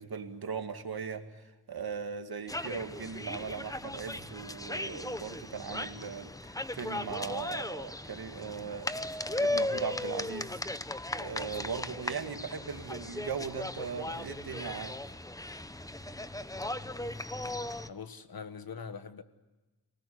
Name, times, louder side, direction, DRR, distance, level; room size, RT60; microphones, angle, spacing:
voice 1, 0.0-10.6 11.1-14.9, right 6 dB, 75° right, 2.2 m, -39 dB
sound 1, 2.5-17.9, left 1 dB, 10° left, 0.9 m, -37 dB
voice 2, 17.7-19.2, left 6 dB, 70° left, 1.5 m, -43 dB
29.0 x 19.0 x 9.6 m
wide cardioid pair, 90°, 37 cm